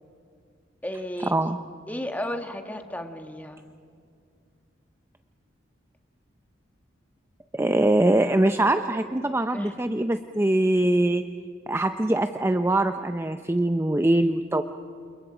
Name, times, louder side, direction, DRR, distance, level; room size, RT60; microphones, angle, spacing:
voice 1, 0.8-1.3 1.9-3.6 9.5-9.8, left 1 dB, 10° left, 5 dB, 1.5 m, -33 dB
voice 2, 7.5-11.2 11.7-14.6, right 1 dB, 10° right, 8 dB, 0.5 m, -23 dB
29.5 x 28.5 x 5.0 m, 2.3 s
head